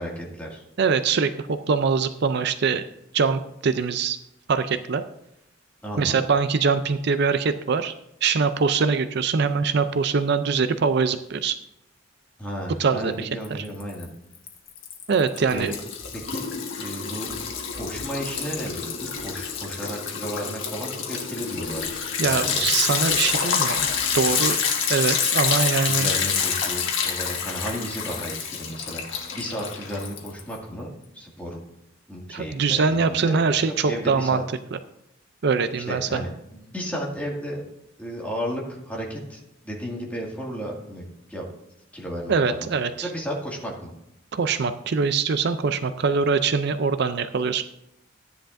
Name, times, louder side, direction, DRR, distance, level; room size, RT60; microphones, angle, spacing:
voice 1, 0.0-0.6 5.8-6.3 12.4-14.1 15.5-15.7 16.1-16.5 16.8-17.3 17.8-21.9 22.2-22.7 25.9-30.9 31.1-31.6 32.1-34.4 35.9-37.6 38.0-41.4 41.9-42.7 43.0-43.9, equal, 10° left, -3 dB, 2.1 m, -33 dB
voice 2, 0.8-2.8 3.1-4.2 4.5-5.0 6.0-7.9 8.2-11.6 12.8-13.6 15.1-15.7 22.2-23.8 24.1-24.6 24.9-26.1 32.3-34.4 34.7-34.8 35.4-36.2 42.3-43.1 44.3-47.6, right 5 dB, 60° right, 11 dB, 0.5 m, -23 dB
Liquid, 13.4-14.0 14.4-30.5, left 6 dB, 80° left, 1.5 m, -27 dB
14.0 x 10.0 x 2.6 m, 0.82 s
head